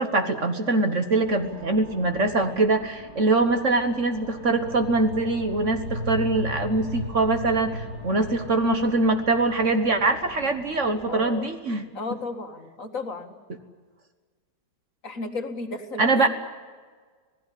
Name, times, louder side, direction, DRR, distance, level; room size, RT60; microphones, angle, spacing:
voice 1, 0.0-11.8 16.0-16.3, right 2 dB, 45° right, 7 dB, 1.6 m, -23 dB
sound 1, 1.1-11.3, left 1 dB, 65° right, 7.3 m, -38 dB
voice 2, 11.1-11.5 11.9-13.3 15.0-16.3, left 3 dB, 50° left, 5 dB, 2.3 m, -34 dB
26.5 x 18.0 x 8.4 m, 1.5 s
omnidirectional pair, 1.9 m